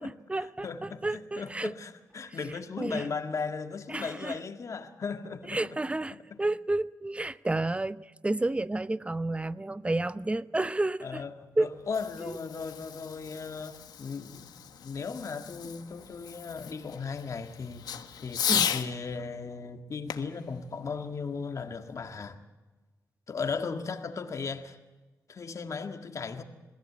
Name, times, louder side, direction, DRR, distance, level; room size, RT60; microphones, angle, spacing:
voice 1, 0.0-1.7 2.8-3.1 3.9-4.4 5.5-11.2 11.6-11.7 12.2-12.3 18.5-18.7, right 2 dB, 20° right, 0.7 m, -31 dB
voice 2, 0.6-5.6 6.3-6.4 11.0-14.5 14.8-17.8 18.2-22.4 23.3-24.8 25.3-26.4, left 5 dB, 50° left, 1.8 m, -36 dB
Fireworks, 11.6-18.9 20.1-21.7, left 8 dB, 85° left, 1.3 m, -36 dB
22.5 x 15.5 x 8.5 m
cardioid pair, 75°, 7 cm